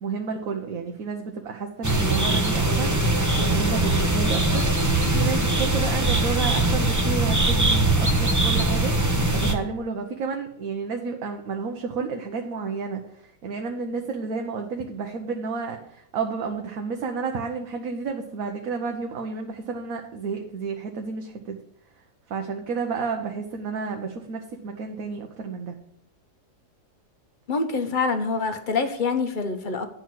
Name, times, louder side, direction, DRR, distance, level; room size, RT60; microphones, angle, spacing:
voice 1, 0.0-2.9 3.4-8.9 9.3-21.6 22.3-25.7, right 5 dB, 65° right, 3 dB, 1.3 m, -31 dB
sound 1, 1.8-9.5, right 2 dB, 15° right, 0.7 m, -21 dB
voice 2, 27.5-29.9, left 4 dB, 35° left, 7 dB, 1.0 m, -25 dB
10.5 x 4.7 x 7.6 m, 0.72 s
omnidirectional pair, 1.6 m